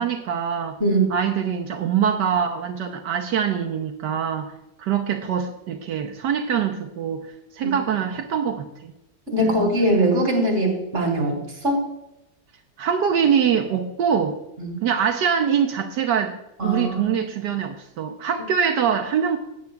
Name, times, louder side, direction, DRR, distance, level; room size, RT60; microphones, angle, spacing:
voice 1, 0.0-0.8 1.1-4.5 4.8-8.9 9.4-9.7 12.8-14.4 14.8-16.4 16.6-19.4, right 7 dB, 75° right, 3 dB, 1.4 m, -24 dB
voice 2, 9.3-11.4 11.6-11.8 14.6-14.8 16.6-17.2, right 1 dB, 40° right, 0 dB, 3.6 m, -21 dB
17.0 x 9.8 x 2.3 m, 0.87 s
omnidirectional pair, 1.9 m